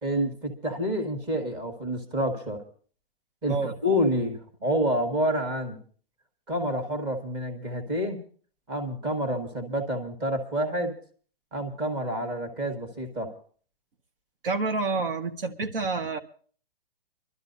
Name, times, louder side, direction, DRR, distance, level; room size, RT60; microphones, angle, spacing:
voice 1, 0.0-2.6 3.4-5.8 6.5-8.2 8.7-10.9 11.5-13.3, equal, 15° right, 5 dB, 1.4 m, -28 dB
voice 2, 14.4-16.2, right 4 dB, 70° right, 7 dB, 1.4 m, -28 dB
27.0 x 12.5 x 2.7 m, 0.43 s
hypercardioid pair, 170°, 29 cm